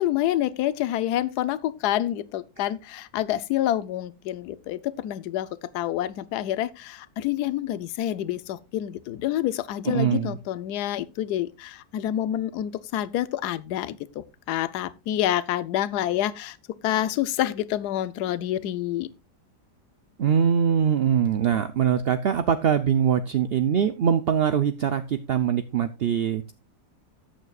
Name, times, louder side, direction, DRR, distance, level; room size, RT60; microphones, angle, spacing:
voice 1, 0.0-5.5 5.7-16.6 16.8-19.1, left 12 dB, 75° left, 1.2 m, -27 dB
voice 2, 9.9-10.4 20.2-26.5, right 8 dB, 60° right, 0.6 m, -23 dB
14.0 x 9.5 x 2.4 m
omnidirectional pair, 1.8 m